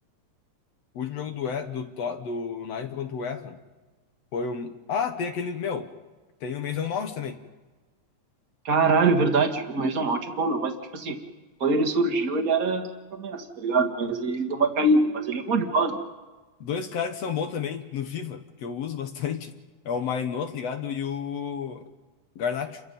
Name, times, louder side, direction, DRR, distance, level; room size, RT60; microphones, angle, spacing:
voice 1, 1.0-3.6 4.3-5.9 6.4-7.4 16.6-19.6 19.9-21.8 22.4-22.8, left 6 dB, 60° left, 7 dB, 2.1 m, -31 dB
voice 2, 8.7-11.2 11.6-16.0, right 3 dB, 35° right, 4 dB, 1.7 m, -24 dB
29.5 x 23.0 x 5.5 m, 1.2 s
omnidirectional pair, 3.6 m